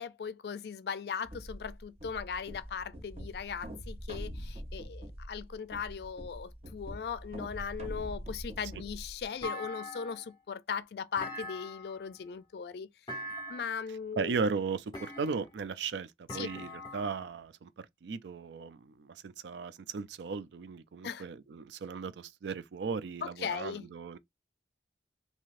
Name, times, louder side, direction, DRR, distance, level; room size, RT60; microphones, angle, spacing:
voice 1, 0.0-12.9 13.5-14.4 16.3-16.5 21.0-21.3 23.2-23.8, left 6 dB, 65° left, 0.4 m, -38 dB
sound 1, 1.2-9.5, equal, 35° right, 0.8 m, -44 dB
Thump thud, 9.4-10.3 11.2-12.1 13.1-13.8 14.9-15.6 16.3-17.3, left 1 dB, 25° left, 1.0 m, -42 dB
voice 2, 14.2-24.2, right 5 dB, 85° right, 0.4 m, -36 dB
3.1 x 2.7 x 2.5 m
head